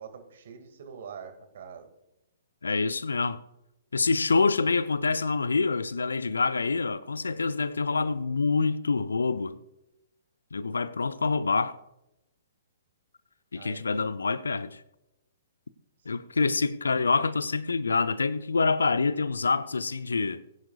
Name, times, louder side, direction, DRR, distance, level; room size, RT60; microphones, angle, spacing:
voice 1, 0.0-1.9 13.5-13.8 16.2-16.4, right 7 dB, 55° right, 2.1 m, -44 dB
voice 2, 2.6-3.4 3.9-9.6 10.5-11.8 13.5-14.8 16.1-20.4, left 4 dB, 75° left, 0.6 m, -26 dB
21.5 x 10.5 x 2.4 m
figure-of-eight pair, 120°, 0 cm